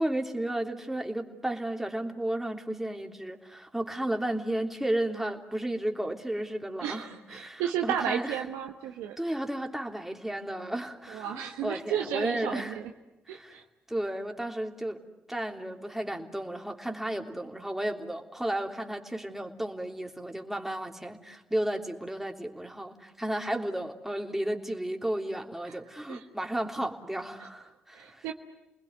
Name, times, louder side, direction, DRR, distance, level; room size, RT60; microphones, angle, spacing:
voice 1, 0.0-8.4 9.2-12.8 13.3-13.6 13.9-15.0 15.3-28.3, right 1 dB, 5° right, 3 dB, 3.3 m, -33 dB
voice 2, 6.8-9.2 11.1-12.9 13.3-13.6 25.7-25.8 26.1-26.2 27.9-28.3, right 9 dB, 90° right, 3 dB, 1.2 m, -33 dB
30.0 x 20.5 x 9.5 m, 1.0 s
supercardioid pair, 45°, 5 cm